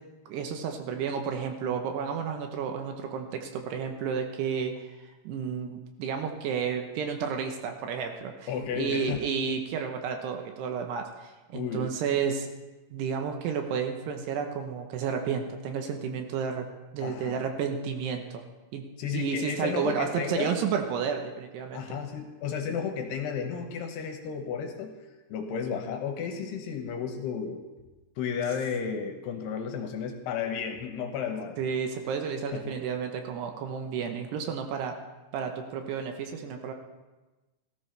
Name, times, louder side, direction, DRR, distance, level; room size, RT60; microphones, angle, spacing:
voice 1, 0.3-4.9 5.2-8.5 8.8-12.5 12.9-16.7 16.9-18.4 18.7-18.8 19.1-22.0 31.6-34.9 35.3-36.7, right 6 dB, 75° right, 5 dB, 2.8 m, -31 dB
voice 2, 8.5-9.3 11.5-11.9 17.0-17.4 19.0-20.5 21.7-24.9 25.3-27.6 28.2-31.6 32.5-32.8, left 7 dB, 75° left, 4 dB, 2.8 m, -33 dB
17.5 x 14.0 x 3.3 m, 1.1 s
omnidirectional pair, 5.2 m